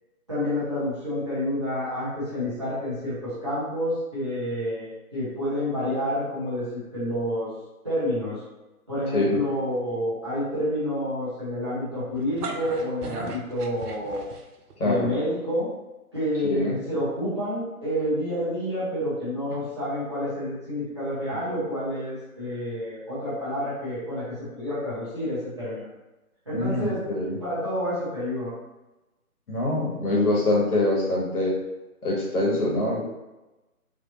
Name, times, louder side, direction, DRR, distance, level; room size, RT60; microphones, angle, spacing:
voice 1, 0.3-6.7 6.9-7.5 7.8-8.4 8.9-14.2 14.8-15.7 16.1-25.8 26.5-27.0 27.4-28.5, equal, 20° right, -13 dB, 0.8 m, -29 dB
voice 2, 9.1-9.4 14.8-15.1 16.5-16.8 26.5-27.4 29.5-31.6 32.0-33.1, left 2 dB, 70° left, -4 dB, 1.4 m, -24 dB
sound 1, 12.1-14.7, right 4 dB, 80° right, 0.6 m, -37 dB
3.2 x 2.6 x 2.8 m, 1.0 s
figure-of-eight pair, 165°, 45 cm